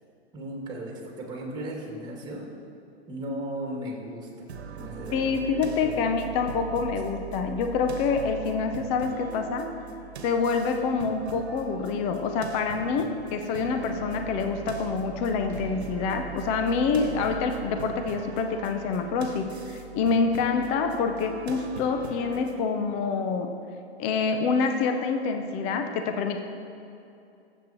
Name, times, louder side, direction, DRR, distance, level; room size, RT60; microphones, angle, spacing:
voice 1, 0.3-2.5 3.1-4.5 4.7-5.4 5.8-6.1, right 1 dB, 15° right, -2 dB, 2.4 m, -36 dB
sound 1, 4.5-22.6, right 5 dB, 75° right, 1.2 m, -40 dB
voice 2, 5.1-9.7 10.2-23.5 24.0-26.4, left 5 dB, 20° left, 6 dB, 0.5 m, -26 dB
19.5 x 7.9 x 3.0 m, 2.7 s
hypercardioid pair, 135°, 32 cm